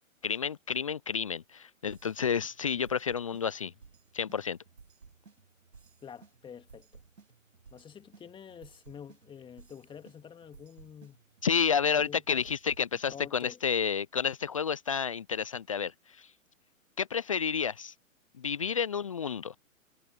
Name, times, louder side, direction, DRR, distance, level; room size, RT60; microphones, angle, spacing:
voice 1, 0.2-3.7 4.1-4.6 11.4-16.3 17.0-17.9 18.4-19.5, left 7 dB, 25° left, 0.3 m, -30 dB
sound 1, 1.9-13.4, right 5 dB, 75° right, 6.6 m, -58 dB
voice 2, 6.0-7.0 7.7-11.2 11.9-12.4 13.1-13.6, left 7 dB, 10° left, 2.0 m, -48 dB
figure-of-eight pair, 125°, 41 cm